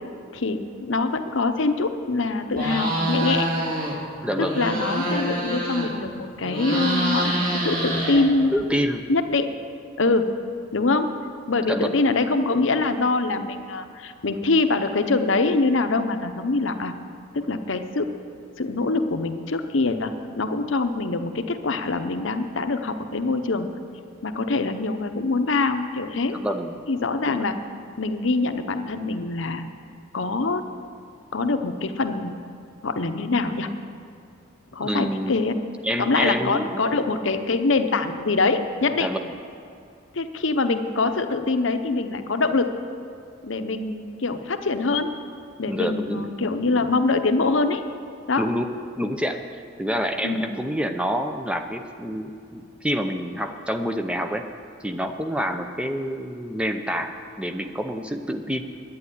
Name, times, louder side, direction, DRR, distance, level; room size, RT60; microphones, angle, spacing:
voice 1, 0.9-3.5 4.4-8.5 9.1-9.5 10.0-10.3 10.7-11.1 11.5-16.9 17.3-18.1 18.6-23.7 24.2-26.4 26.9-27.6 28.0-29.7 30.1-30.6 31.3-32.4 32.8-33.7 34.7-35.6 36.0-39.1 40.1-42.7 43.4-45.1 45.6-47.8 48.3-48.5 50.2-50.5, left 3 dB, 70° left, 8 dB, 0.8 m, -24 dB
sound 1, 2.5-4.0 4.3-6.1 6.4-8.6, right 1 dB, 40° right, 2.7 m, -26 dB
voice 2, 4.2-4.6 8.5-9.0 11.7-12.0 26.3-26.7 34.8-35.3 35.8-36.8 39.0-39.2 45.7-46.3 48.4-48.6 49.0-54.4 54.8-58.6, equal, 5° right, 6 dB, 0.6 m, -27 dB
11.0 x 9.5 x 9.9 m, 2.5 s
head